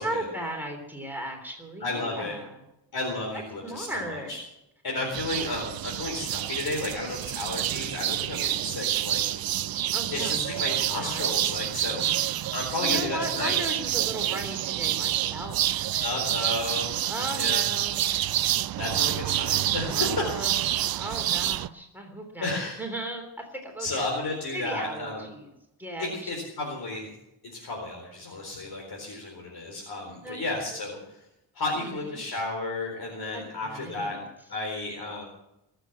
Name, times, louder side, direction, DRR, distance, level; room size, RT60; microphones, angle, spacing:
voice 1, 0.0-2.5 3.6-4.4 9.9-10.4 11.0-11.3 12.8-16.1 17.0-18.0 19.8-20.6 21.0-22.5 22.8-24.1 24.5-25.5 25.8-26.3 30.2-30.4 31.7-32.2 33.3-34.2, right 1 dB, 5° right, 1 dB, 3.4 m, -36 dB
voice 2, 1.8-2.4 2.9-4.4 4.8-9.2 10.1-12.2 12.5-13.5 16.0-17.0 17.3-17.6 18.8-20.3 22.4-22.8 23.8-25.3 26.0-27.1 27.4-31.2 31.5-34.2 34.5-35.2, left 2 dB, 55° left, -1 dB, 4.3 m, -32 dB
sound 1, 5.1-21.7, right 13 dB, 55° right, 0.5 m, -28 dB
23.0 x 7.9 x 7.3 m, 0.86 s
wide cardioid pair, 120°, 44 cm